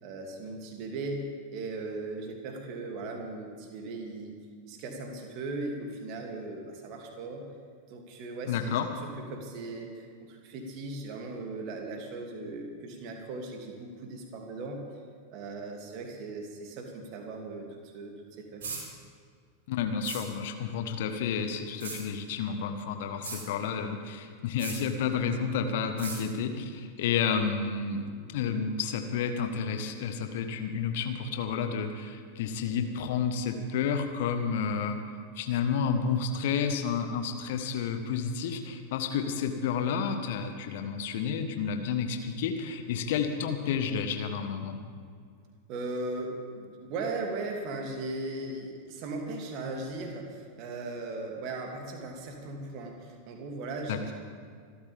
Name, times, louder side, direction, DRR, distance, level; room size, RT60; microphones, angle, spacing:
voice 1, 0.0-4.4 4.6-7.6 7.9-14.8 15.3-18.6 45.7-54.1, right 2 dB, 40° right, 2 dB, 2.7 m, -38 dB
voice 2, 8.5-8.9 19.7-35.0 35.4-44.8 53.9-54.1, left 6 dB, 55° left, 7 dB, 1.4 m, -30 dB
sound 1, 18.6-18.8 20.0-20.2 21.8-22.0 23.2-23.4 24.6-24.8 26.0-26.2, right 4 dB, 60° right, 5.4 m, -37 dB
26.0 x 13.0 x 3.6 m, 2.1 s
figure-of-eight pair, 90°, 0 cm